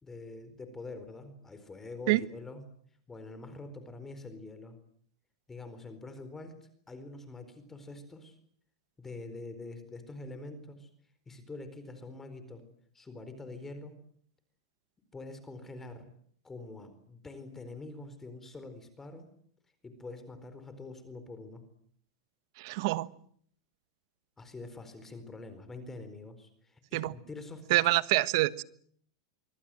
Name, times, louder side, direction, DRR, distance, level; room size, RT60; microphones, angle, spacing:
voice 1, 0.0-2.7 3.1-4.8 5.5-8.4 9.0-10.9 11.3-12.6 12.9-14.0 15.1-16.1 16.4-19.3 19.8-21.6 24.4-27.8, left 3 dB, 10° left, 4.3 m, -45 dB
voice 2, 22.6-23.1 26.9-27.1 27.7-28.6, right 19 dB, 60° right, 1.3 m, -26 dB
25.5 x 24.5 x 7.7 m
supercardioid pair, 140°, 3 cm